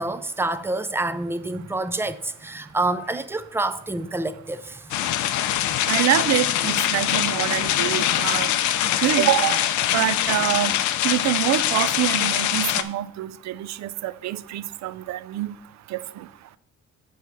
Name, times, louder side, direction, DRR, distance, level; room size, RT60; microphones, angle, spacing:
voice 1, 0.0-4.8, right 2 dB, 10° right, 0.4 m, -27 dB
sound 1, 4.9-12.8, left 11 dB, 90° left, 0.6 m, -23 dB
voice 2, 5.9-8.5 9.0-9.6 9.9-10.8 11.0-15.5 15.9-16.3, right 14 dB, 70° right, 0.5 m, -25 dB
8.5 x 4.7 x 5.6 m
cardioid pair, 150°, 29 cm